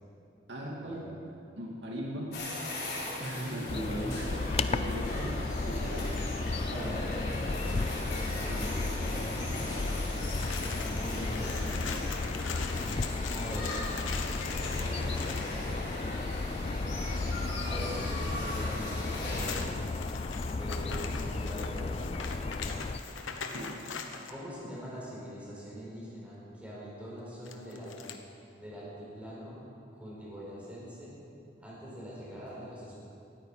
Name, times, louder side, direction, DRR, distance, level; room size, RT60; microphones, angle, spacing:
voice 1, 0.5-1.1 1.5-2.3 3.2-5.4 5.7-6.2 8.5-9.9 23.2-23.8, equal, 70° right, -3 dB, 2.3 m, -39 dB
sound 1, 2.3-19.5, left 1 dB, 55° left, 4.9 m, -39 dB
sound 2, 3.7-23.0, left 3 dB, 30° left, 0.3 m, -34 dB
voice 2, 6.6-7.8 10.6-11.9 13.3-13.7 14.5-16.5 17.6-19.8 20.4-22.2 24.3-27.9 28.6-28.9 29.1-29.6 30.0-31.1 31.6-33.0, equal, 5° right, -7 dB, 4.6 m, -42 dB
sound 3, 10.1-15.6 18.8-24.4 27.4-28.2, left 5 dB, 90° left, 1.1 m, -41 dB
18.5 x 13.5 x 5.0 m, 2.7 s
head